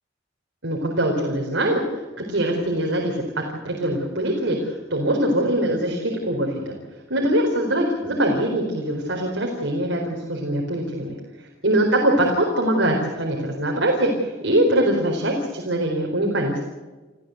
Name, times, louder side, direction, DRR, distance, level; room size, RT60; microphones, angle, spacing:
voice 1, 0.6-6.8 7.1-16.6, right 1 dB, 85° right, 0 dB, 4.4 m, -23 dB
29.5 x 15.0 x 8.0 m, 1.2 s
head